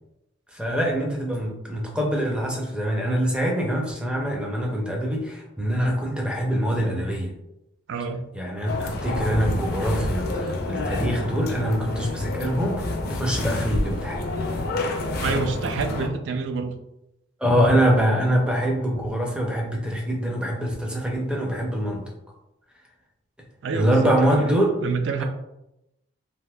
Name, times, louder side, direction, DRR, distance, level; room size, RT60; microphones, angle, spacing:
voice 1, 0.5-7.3 8.3-14.2 17.4-22.0 23.7-24.7 25.2-25.3, equal, 5° right, -1 dB, 0.5 m, -24 dB
voice 2, 7.9-8.3 15.2-16.8 23.6-24.5 24.8-25.2, right 4 dB, 70° right, 6 dB, 0.4 m, -27 dB
sound 1, 8.7-16.1, left 2 dB, 50° left, 0.4 m, -28 dB
3.4 x 2.6 x 2.2 m, 0.88 s
head